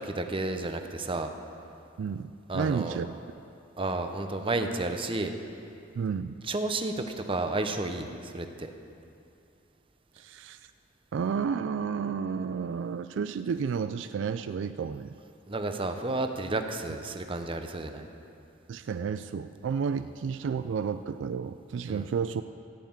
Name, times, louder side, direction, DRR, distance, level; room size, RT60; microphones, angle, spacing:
voice 1, 0.0-1.3 2.5-3.0 3.8-5.3 6.5-8.7 15.5-18.1 21.9-22.1, right 2 dB, 30° right, 6 dB, 0.8 m, -31 dB
voice 2, 2.0-3.1 6.0-6.4 10.2-10.6 11.1-15.1 18.7-22.4, right 6 dB, 70° right, 11 dB, 0.3 m, -31 dB
15.0 x 5.7 x 8.8 m, 2.7 s
head